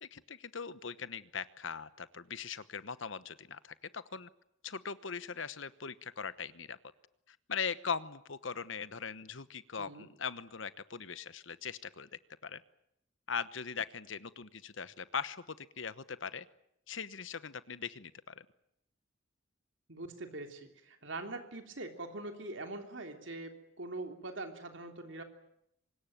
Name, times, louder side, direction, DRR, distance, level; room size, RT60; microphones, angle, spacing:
voice 1, 0.0-4.3 4.6-6.8 7.3-12.1 12.4-12.6 13.3-16.5 16.9-18.5, left 6 dB, 70° left, 15 dB, 1.1 m, -40 dB
voice 2, 9.8-10.1 19.9-25.2, right 2 dB, 65° right, 5 dB, 3.2 m, -43 dB
24.5 x 21.0 x 9.3 m, 0.77 s
head